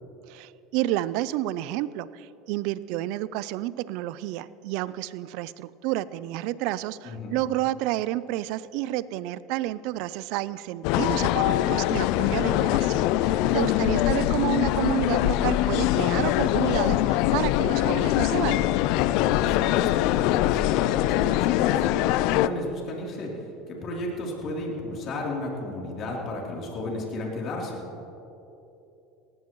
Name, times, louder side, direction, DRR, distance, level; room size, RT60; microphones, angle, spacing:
voice 1, 0.3-18.8, right 15 dB, 70° right, 18 dB, 0.4 m, -30 dB
voice 2, 7.0-7.4 13.3-13.7 19.1-27.8, left 1 dB, 50° left, -2 dB, 3.3 m, -34 dB
sound 1, 10.8-22.5, left 14 dB, 65° left, 0.4 m, -23 dB
18.5 x 16.0 x 3.1 m, 2.9 s
supercardioid pair, 95°, 0 cm